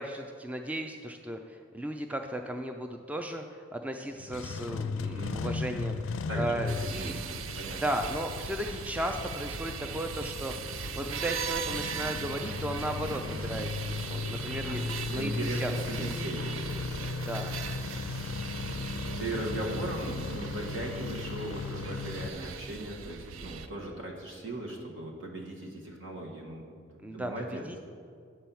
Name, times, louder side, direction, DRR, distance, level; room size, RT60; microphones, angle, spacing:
voice 1, 0.0-7.2 7.7-16.3 17.3-17.5 27.0-27.8, right 1 dB, 5° right, 4 dB, 0.3 m, -36 dB
Engine starting, 4.2-22.3, left 4 dB, 70° left, 0.4 m, -37 dB
voice 2, 5.0-5.4 6.3-6.5 7.0-7.2 7.5-7.8 14.6-14.8 15.1-17.2 19.2-26.7 27.1-27.6, right 1 dB, 70° right, -1 dB, 1.6 m, -38 dB
sound 1, 6.7-23.7, right 6 dB, 85° right, 0.4 m, -39 dB
9.5 x 4.4 x 7.0 m, 2.2 s
head